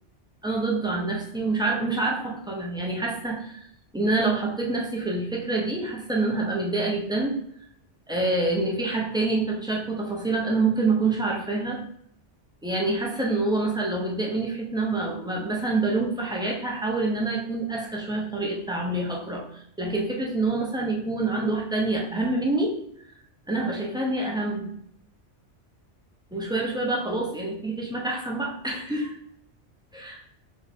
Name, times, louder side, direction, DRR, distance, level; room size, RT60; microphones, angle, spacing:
voice 1, 0.4-3.6 3.9-7.3 8.1-11.8 12.6-22.7 23.5-24.7 26.3-29.1 29.9-30.1, right 2 dB, 5° right, -2 dB, 0.6 m, -26 dB
3.4 x 3.1 x 4.1 m, 0.68 s
omnidirectional pair, 1.2 m